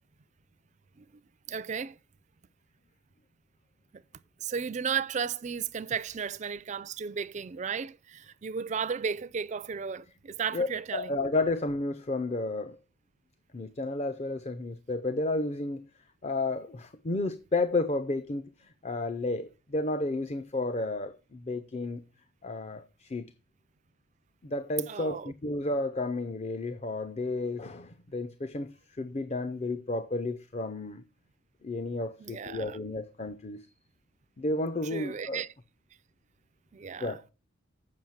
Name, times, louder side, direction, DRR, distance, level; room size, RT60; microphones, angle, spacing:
voice 1, 1.5-2.0 3.9-4.0 4.4-11.1 24.9-25.3 32.2-32.8 34.8-35.5 36.7-37.2, right 6 dB, 35° right, 0.4 m, -34 dB
voice 2, 10.5-12.8 13.5-15.9 16.2-18.5 18.8-22.0 22.4-23.3 24.4-31.0 31.6-33.6 34.4-35.4 37.0-37.2, left 2 dB, 30° left, 0.5 m, -32 dB
7.7 x 5.6 x 7.1 m
head